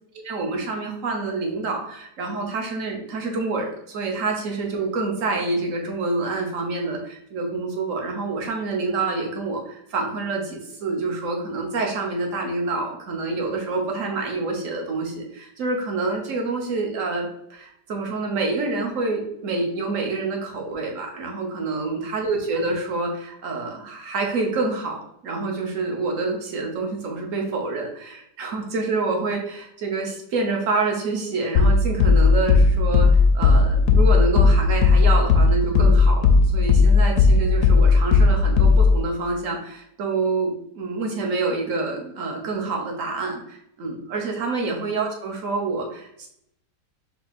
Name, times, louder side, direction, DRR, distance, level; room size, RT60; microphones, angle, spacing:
voice 1, 0.2-33.1 33.3-46.3, right 3 dB, 55° right, 1 dB, 1.2 m, -27 dB
sound 1, 31.6-39.1, left 4 dB, 70° left, 0.9 m, -16 dB
4.4 x 2.8 x 4.2 m, 0.74 s
omnidirectional pair, 1.9 m